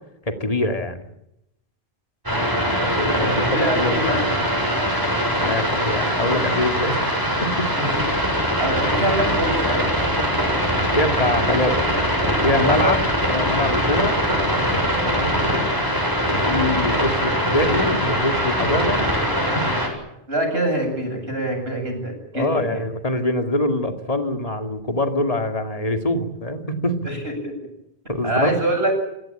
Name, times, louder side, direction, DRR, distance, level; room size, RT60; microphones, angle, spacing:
voice 1, 0.3-1.0 2.8-4.4 5.3-7.0 7.4-7.8 10.8-13.0 13.3-14.2 15.0-15.4 16.3-19.2 19.5-19.6 22.3-27.0 28.1-28.5, left 1 dB, 35° left, 5 dB, 2.4 m, -24 dB
sound 1, 2.3-19.9, equal, 20° right, 7.3 m, -22 dB
voice 2, 3.2-4.1 7.8-7.9 8.6-9.8 12.6-13.0 20.3-22.8 27.0-27.2 27.4-27.5 28.2-28.9, right 1 dB, 70° right, 3 dB, 8.4 m, -24 dB
29.0 x 17.0 x 9.0 m, 0.85 s
omnidirectional pair, 1.1 m